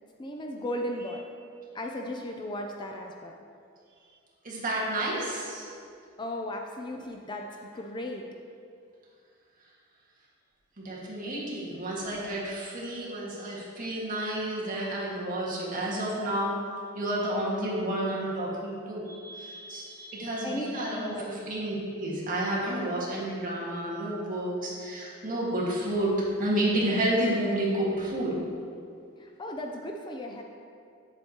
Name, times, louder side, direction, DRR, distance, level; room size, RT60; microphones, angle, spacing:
voice 1, 0.2-1.2 1.7-3.3 6.2-7.5 7.7-8.2 20.4-21.6 29.2-30.4, left 1 dB, 20° left, 2 dB, 0.4 m, -36 dB
voice 2, 4.4-5.7 10.8-16.6 16.9-26.1 26.4-28.4, right 1 dB, 40° right, -5 dB, 1.6 m, -30 dB
7.9 x 7.8 x 2.8 m, 2.4 s
head